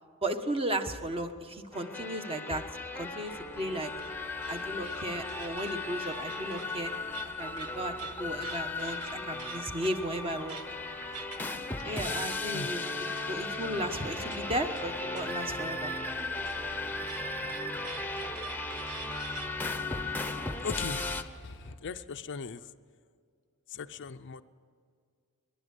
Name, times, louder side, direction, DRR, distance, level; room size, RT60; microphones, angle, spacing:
voice 1, 0.2-2.6 2.9-3.9 4.5-6.9 7.4-10.6 11.8-12.8 13.3-15.9, right 1 dB, 25° right, 6 dB, 1.3 m, -35 dB
sound 1, 1.7-21.2, left 2 dB, 10° left, 0.9 m, -36 dB
Truck, 3.1-21.7, right 1 dB, 40° right, 3.8 m, -53 dB
sound 2, 3.2-21.4, right 6 dB, 90° right, 1.3 m, -50 dB
voice 2, 20.6-22.7 23.7-24.4, left 5 dB, 55° left, 9 dB, 0.6 m, -39 dB
23.5 x 11.5 x 9.9 m, 2.1 s
head